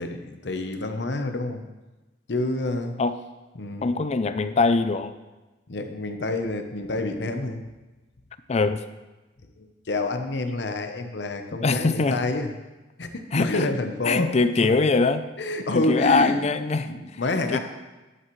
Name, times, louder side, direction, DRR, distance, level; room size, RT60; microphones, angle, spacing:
voice 1, 0.0-1.6 2.3-2.9 3.6-3.9 5.7-7.6 9.6-12.5 13.0-14.3 14.6-14.7 15.4-16.4 16.9-17.6, left 2 dB, 70° left, 6 dB, 0.8 m, -28 dB
voice 2, 3.8-5.1 8.5-8.8 11.6-12.2 13.3-13.7 14.0-15.2 15.7-17.2 17.5-17.6, left 3 dB, 40° left, 11 dB, 0.4 m, -22 dB
11.0 x 8.5 x 3.1 m, 1.1 s
head